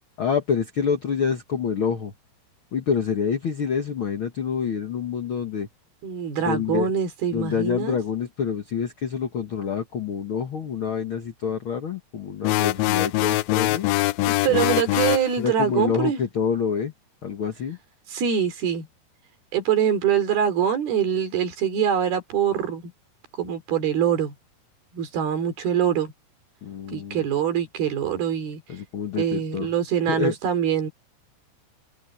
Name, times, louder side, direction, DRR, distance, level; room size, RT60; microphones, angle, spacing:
voice 1, 0.2-2.1 2.7-5.7 6.4-6.9 7.3-13.9 14.5-14.7 15.4-16.9 17.2-17.8 26.6-27.2 28.7-29.7 30.1-30.3, left 6 dB, 65° left, 1.2 m, -27 dB
voice 2, 6.0-8.0 14.3-16.2 18.1-18.9 19.5-22.8 23.4-24.3 24.9-26.1 26.9-28.6 29.2-30.9, right 8 dB, 70° right, 5.4 m, -24 dB
sound 1, 12.4-15.3, left 18 dB, 85° left, 2.3 m, -23 dB
omnidirectional pair, 4.6 m